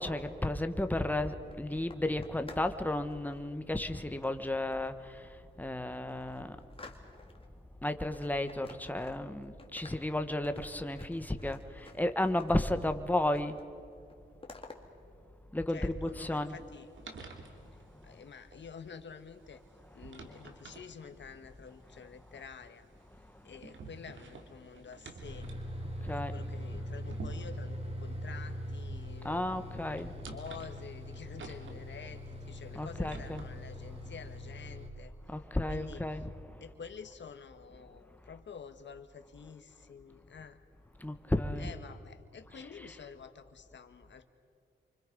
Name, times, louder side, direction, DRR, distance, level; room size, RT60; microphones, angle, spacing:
voice 1, 0.0-6.6 7.8-13.6 15.5-16.6 17.9-18.1 19.9-20.4 20.7-20.8 21.9-22.0 22.3-22.4 23.3-23.4 26.0-26.3 29.2-30.1 32.7-33.4 35.3-36.6 41.0-41.7 42.5-43.0, left 1 dB, 10° left, 8 dB, 1.4 m, -33 dB
sound 1, 0.8-2.8 3.0-3.4 4.2-5.0 5.5-5.6 5.9-7.5 7.8-9.3 9.6-12.8 13.1-13.7 13.9-14.8, left 3 dB, 30° left, 2.3 m, -53 dB
voice 2, 15.7-16.9 18.0-19.6 19.9-22.9 23.4-25.5 26.1-29.8 30.3-35.1 35.7-36.2 36.6-40.6 41.6-44.3, left 6 dB, 65° left, 8 dB, 1.7 m, -49 dB
sound 2, 16.1-34.4, right 4 dB, 80° right, 2.8 m, -52 dB
Bus, 25.2-34.9, equal, 30° right, 3.2 m, -42 dB
29.0 x 25.0 x 5.4 m, 2.4 s
cardioid pair, 90°, 20 cm